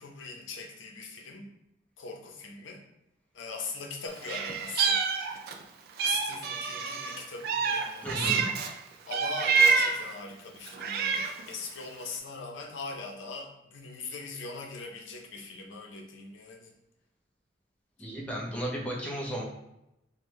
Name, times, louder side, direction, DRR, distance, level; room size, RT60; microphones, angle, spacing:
voice 1, 0.0-1.5 2.0-2.8 3.3-5.0 6.1-8.5 9.0-16.7, left 4 dB, 80° left, 1 dB, 0.6 m, -41 dB
Meow, 4.2-5.6 6.0-8.7 9.1-10.1 10.7-11.5, right 5 dB, 55° right, 0.3 m, -27 dB
voice 2, 8.0-8.5 18.0-19.4, equal, 5° left, -3 dB, 0.6 m, -34 dB
3.5 x 2.1 x 3.1 m, 0.87 s
head